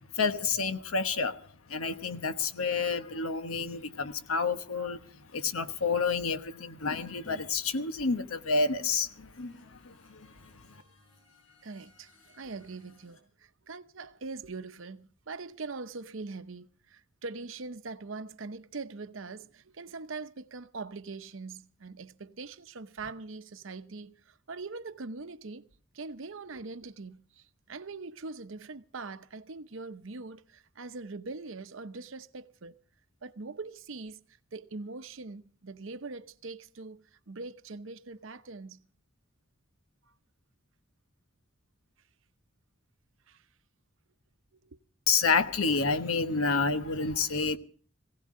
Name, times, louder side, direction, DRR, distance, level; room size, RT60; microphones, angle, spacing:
voice 1, 0.1-1.4 1.7-10.5 45.1-47.6, left 4 dB, 85° left, 1.0 m, -29 dB
sound 1, 7.2-7.4 8.8-13.2, right 1 dB, 70° left, 4.7 m, -58 dB
voice 2, 11.6-25.6 25.9-32.8 33.2-34.2 34.5-38.9 43.3-43.5 44.6-44.8, right 3 dB, 65° right, 0.8 m, -42 dB
19.0 x 17.0 x 3.7 m
head